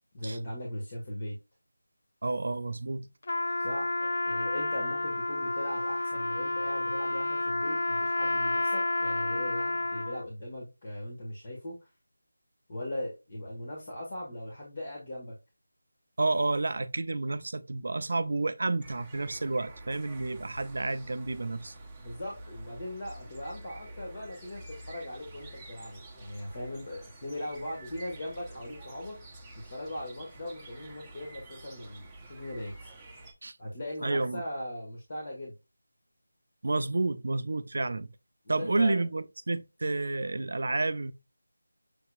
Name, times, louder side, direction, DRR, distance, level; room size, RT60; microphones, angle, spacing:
voice 1, 0.1-1.4 3.6-11.9 12.7-15.4 22.0-29.2 29.5-32.9 33.6-35.5 38.4-39.0, left 1 dB, 40° left, 1.5 m, -39 dB
voice 2, 2.2-3.1 16.2-21.7 33.4-33.6 34.0-34.4 36.6-38.1 38.5-41.1, right 2 dB, 60° right, 0.5 m, -30 dB
Trumpet, 3.2-10.2, left 2 dB, 60° left, 0.4 m, -30 dB
sound 1, 18.8-33.3, right 2 dB, 5° right, 0.9 m, -48 dB
6.5 x 2.8 x 2.3 m
figure-of-eight pair, 170°, 0 cm